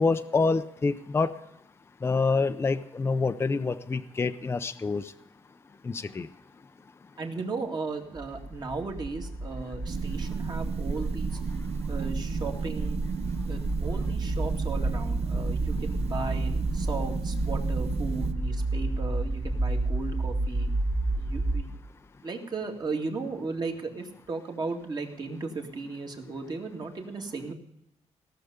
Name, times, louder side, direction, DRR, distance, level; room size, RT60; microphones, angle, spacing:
voice 1, 0.0-1.3 2.0-5.1 5.8-6.3, left 4 dB, 20° left, 9 dB, 0.5 m, -27 dB
voice 2, 7.2-11.4 11.9-13.0 13.5-20.7 21.2-21.7 22.2-27.5, right 4 dB, 35° right, 3 dB, 2.2 m, -36 dB
sound 1, 8.1-21.6, right 2 dB, 10° right, 0.8 m, -31 dB
sound 2, 9.9-18.3, right 6 dB, 60° right, 0.7 m, -33 dB
17.5 x 6.8 x 9.5 m, 0.81 s
wide cardioid pair, 155°, 12 cm